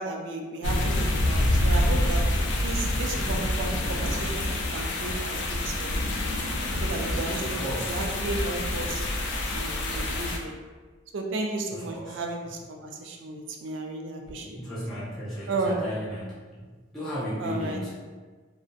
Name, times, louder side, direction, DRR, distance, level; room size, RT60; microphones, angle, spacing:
voice 1, 0.0-2.2 2.6-4.5 4.7-6.4 6.8-7.6 7.9-9.0 9.5-10.5 11.1-14.5 15.5-15.9 17.4-17.9, right 2 dB, 75° right, 2 dB, 0.3 m, -33 dB
sound 1, 0.6-10.4, left 1 dB, 70° left, 0.4 m, -27 dB
voice 2, 7.4-8.0 11.7-12.1 14.4-16.6 16.9-17.9, equal, ahead, -11 dB, 0.4 m, -35 dB
2.4 x 2.0 x 2.5 m, 1.4 s
head